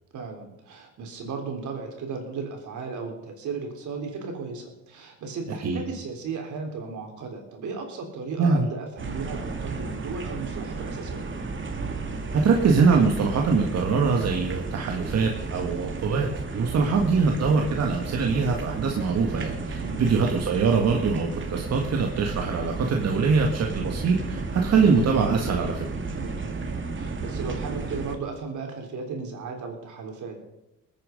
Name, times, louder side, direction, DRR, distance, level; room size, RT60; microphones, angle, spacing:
voice 1, 0.1-11.3 19.8-20.1 26.2-26.6 26.9-30.4, right 4 dB, 75° right, 3 dB, 3.8 m, -35 dB
voice 2, 8.4-8.7 12.3-16.3 16.5-25.9, right 4 dB, 55° right, 2 dB, 1.7 m, -23 dB
sound 1, 9.0-28.2, right 3 dB, 40° right, 2.2 m, -33 dB
20.5 x 9.2 x 5.3 m, 0.92 s
cardioid pair, 90°, 30 cm